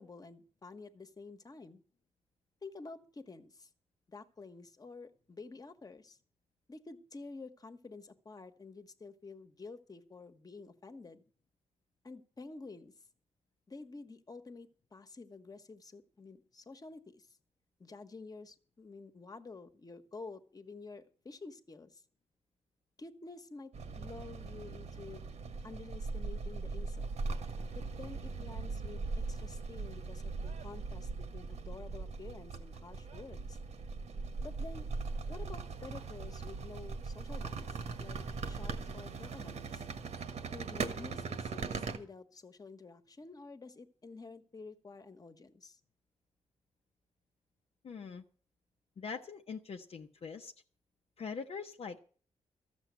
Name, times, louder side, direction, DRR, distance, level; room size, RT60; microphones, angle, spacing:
voice 1, 0.0-1.8 2.6-3.7 4.1-6.2 6.7-11.2 12.0-12.9 13.7-17.3 17.8-22.0 23.0-25.2 25.6-27.1 27.7-33.6 34.4-34.9 35.3-38.2 38.5-39.9 40.5-45.8, left 3 dB, 35° left, 9 dB, 1.3 m, -50 dB
sound 1, 23.7-42.0, right 4 dB, 75° right, 1.6 m, -40 dB
voice 2, 47.8-48.2 49.0-50.5 51.2-52.0, left 5 dB, 60° left, 4 dB, 0.8 m, -42 dB
13.5 x 7.1 x 8.2 m, 0.44 s
cardioid pair, 90°, 12 cm